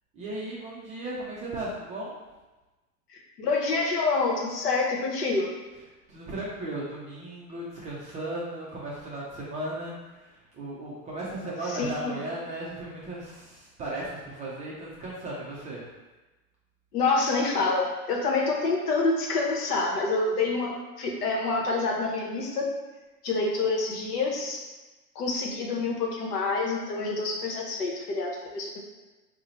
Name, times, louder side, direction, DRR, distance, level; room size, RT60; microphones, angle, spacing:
voice 1, 0.1-2.2 6.1-15.8, right 1 dB, 15° right, -6 dB, 0.3 m, -36 dB
voice 2, 3.1-5.5 11.7-12.2 16.9-22.7 23.2-24.7 25.1-28.8, left 3 dB, 75° left, -1 dB, 0.9 m, -27 dB
2.7 x 2.1 x 4.0 m, 1.1 s
hypercardioid pair, 100°, 47 cm